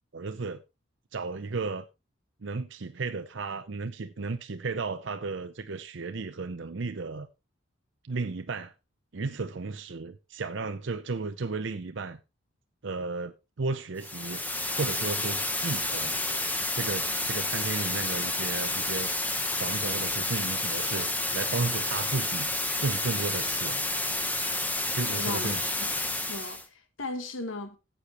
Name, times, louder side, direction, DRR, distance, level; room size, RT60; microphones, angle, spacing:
voice 1, 0.1-0.6 1.1-1.9 2.4-7.3 8.0-8.7 9.1-12.2 12.8-14.4 14.7-16.2 16.7-19.1 19.5-22.5 22.8-23.9 24.9-25.6, right 4 dB, 60° right, 0.6 m, -34 dB
sound 1, 14.0-26.7, left 2 dB, 10° left, 1.0 m, -30 dB
voice 2, 25.2-25.6 26.3-27.8, left 2 dB, 75° left, 1.7 m, -36 dB
15.0 x 8.6 x 3.0 m
head